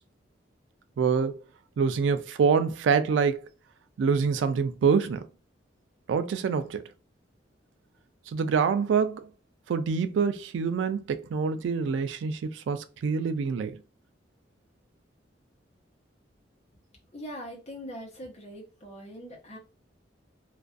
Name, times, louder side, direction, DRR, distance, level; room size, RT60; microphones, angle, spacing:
voice 1, 1.0-1.4 1.8-3.4 4.0-5.3 6.1-6.8 8.3-9.3 9.7-13.8, right 6 dB, 85° right, 0.3 m, -26 dB
voice 2, 17.1-19.6, equal, 35° left, 0.8 m, -42 dB
2.4 x 2.2 x 2.4 m
head